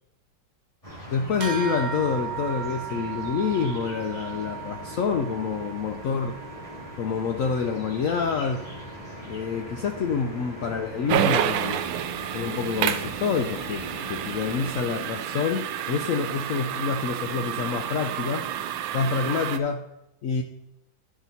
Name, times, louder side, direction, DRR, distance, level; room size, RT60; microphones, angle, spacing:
sound 1, 0.8-14.7, left 1 dB, 15° left, 2.5 m, -41 dB
voice 1, 1.1-6.4 7.0-8.7 9.2-11.8 12.3-18.5 18.9-19.9 20.2-20.4, left 6 dB, 85° left, 5 dB, 0.7 m, -27 dB
sound 2, 1.4-11.2, right 8 dB, 70° right, 0.4 m, -38 dB
sound 3, 11.1-19.6, right 11 dB, 90° right, 1.4 m, -29 dB
10.5 x 6.0 x 4.1 m, 0.88 s
omnidirectional pair, 2.1 m